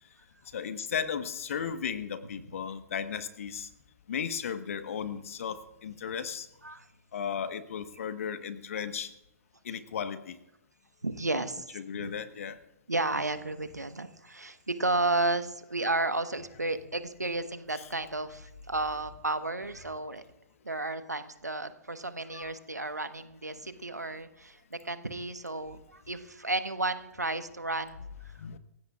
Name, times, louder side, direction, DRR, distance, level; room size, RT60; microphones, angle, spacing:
voice 1, 0.5-3.7 4.1-6.5 7.1-9.1 9.6-10.4 11.3-12.6 13.1-13.3 17.8-17.9 22.3-22.5 22.8-23.1 28.4-28.6, left 7 dB, 55° left, 11 dB, 1.3 m, -35 dB
voice 2, 11.0-11.7 11.9-12.1 12.9-20.2 20.6-28.4, right 2 dB, 85° right, 11 dB, 1.3 m, -33 dB
27.0 x 16.0 x 2.5 m, 0.87 s
figure-of-eight pair, 120°, 9 cm